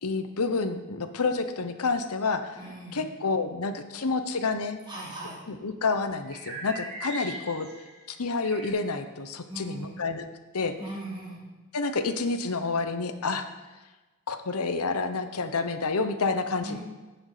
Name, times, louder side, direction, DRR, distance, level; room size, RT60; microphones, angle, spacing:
voice 1, 0.0-2.4 2.9-4.8 5.5-7.7 8.1-10.3 10.5-10.7 11.7-13.5 14.3-16.8, left 4 dB, 80° left, 9 dB, 0.9 m, -29 dB
voice 2, 2.6-3.1 4.9-5.4 9.5-10.1 10.8-11.4 16.6-16.8, right 1 dB, 20° right, -5 dB, 3.0 m, -39 dB
sound 1, 6.2-8.7, right 1 dB, 50° right, 3.2 m, -39 dB
15.5 x 6.3 x 5.0 m, 1.2 s
head